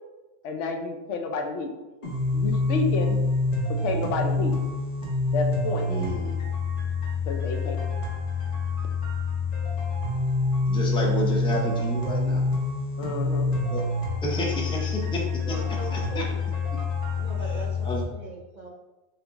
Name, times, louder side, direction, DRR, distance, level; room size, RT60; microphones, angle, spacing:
voice 1, 0.4-1.7 2.3-3.1 3.8-4.6 5.3-5.9 7.3-7.8 13.0-13.5, left 3 dB, 85° left, 4 dB, 0.9 m, -30 dB
sound 1, 2.0-18.0, left 3 dB, 50° left, 1.1 m, -27 dB
voice 2, 5.9-6.4 10.7-12.4 13.7-13.8 14.2-15.2 15.9-16.2 17.8-18.0, equal, 5° left, -2 dB, 0.4 m, -30 dB
voice 3, 15.4-16.5 17.2-18.7, right 3 dB, 50° right, -2 dB, 0.6 m, -40 dB
3.5 x 3.1 x 3.9 m, 1.1 s
omnidirectional pair, 1.2 m